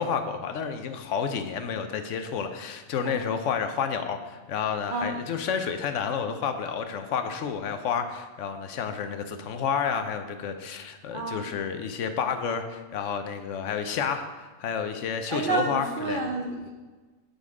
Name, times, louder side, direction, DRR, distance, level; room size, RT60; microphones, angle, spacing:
voice 1, 0.0-16.2, left 6 dB, 70° left, 8 dB, 0.9 m, -30 dB
voice 2, 11.1-11.4 15.3-16.7, right 3 dB, 50° right, 1 dB, 0.7 m, -29 dB
8.4 x 4.0 x 4.8 m, 1.3 s
omnidirectional pair, 1.4 m